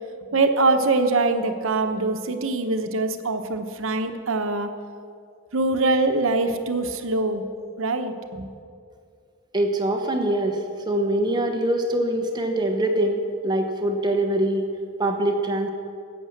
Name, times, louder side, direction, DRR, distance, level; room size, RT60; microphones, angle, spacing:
voice 1, 0.3-4.7 5.5-7.4 7.8-8.5, right 3 dB, 75° right, 7 dB, 1.0 m, -23 dB
voice 2, 9.5-10.6 10.9-14.6 15.0-15.7, right 1 dB, 20° right, 4 dB, 1.0 m, -23 dB
13.5 x 8.7 x 7.2 m, 2.3 s
head